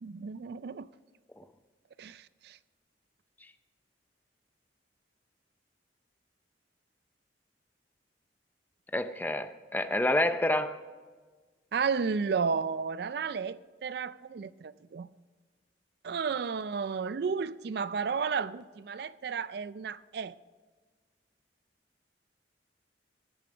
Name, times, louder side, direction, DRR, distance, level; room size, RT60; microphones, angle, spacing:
voice 1, 0.0-0.9 2.0-2.6 11.7-15.1 16.0-20.3, right 5 dB, 60° right, 0.4 m, -33 dB
voice 2, 8.9-10.8, left 1 dB, 10° left, 0.5 m, -28 dB
17.0 x 7.1 x 5.0 m
head